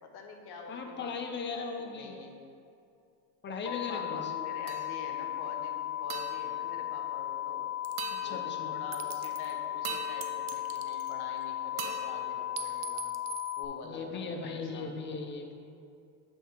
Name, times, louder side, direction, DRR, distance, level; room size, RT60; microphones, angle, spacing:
voice 1, 0.0-2.4 3.6-7.7 8.2-13.0 13.6-15.0, left 4 dB, 55° left, 2 dB, 1.1 m, -46 dB
voice 2, 0.7-2.2 3.4-4.3 8.2-8.7 13.8-15.5, left 4 dB, 25° left, 3 dB, 0.7 m, -38 dB
sound 1, 3.7-13.7, left 13 dB, 90° left, 0.6 m, -36 dB
sound 2, 4.7-5.3 6.1-7.5 8.0-9.0 9.8-11.3 11.8-13.2, right 7 dB, 65° right, 0.9 m, -44 dB
sound 3, 7.8-8.1 8.9-9.5 10.2-11.4 12.6-13.6, right 10 dB, 35° right, 0.5 m, -43 dB
7.8 x 3.5 x 4.6 m, 2.5 s
supercardioid pair, 105°, 47 cm